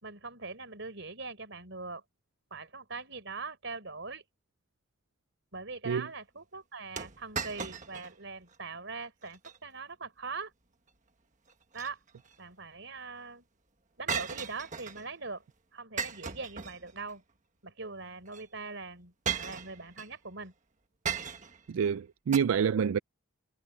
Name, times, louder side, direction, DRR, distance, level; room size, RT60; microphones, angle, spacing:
voice 1, 0.0-2.0 2.5-4.2 5.5-10.5 11.7-12.0 12.4-13.4 14.0-15.4 15.7-17.2 17.6-20.5, right 4 dB, 60° right, 4.6 m, -42 dB
sound 1, 7.0-8.1 8.5-8.6 9.2-9.6 11.5-12.3 14.1-15.1 16.0-17.1 18.3-18.4 19.2-20.1 21.0-21.6 22.3-22.4, right 6 dB, 35° right, 1.4 m, -36 dB
voice 2, 21.7-23.0, right 7 dB, 85° right, 0.4 m, -27 dB
head